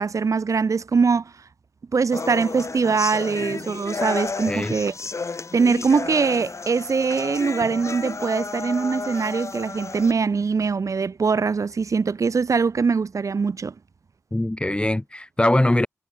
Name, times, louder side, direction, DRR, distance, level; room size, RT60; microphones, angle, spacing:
voice 1, 0.0-1.3 1.9-4.9 5.5-13.7, right 5 dB, 70° right, 1.8 m, -22 dB
sound 1, 2.1-10.1, left 4 dB, 60° left, 3.6 m, -32 dB
voice 2, 4.5-4.8 14.3-15.9, left 1 dB, 20° left, 2.9 m, -22 dB
Drum, 7.6-9.6, left 5 dB, 75° left, 7.4 m, -49 dB
wide cardioid pair, 65°, 6 cm